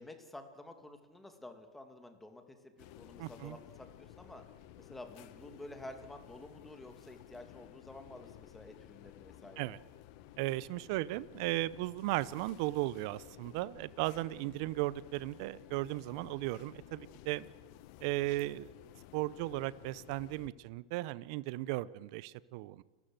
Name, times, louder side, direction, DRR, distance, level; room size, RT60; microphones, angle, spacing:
voice 1, 0.0-3.9 4.2-4.4 4.8-9.7, left 1 dB, 5° left, 2.4 m, -50 dB
sound 1, 2.8-20.5, left 13 dB, 55° left, 1.1 m, -54 dB
voice 2, 3.2-3.6 9.6-9.8 10.4-17.5 18.0-18.7 19.1-22.8, right 18 dB, 55° right, 0.7 m, -36 dB
30.0 x 13.5 x 7.8 m
supercardioid pair, 130°, 3 cm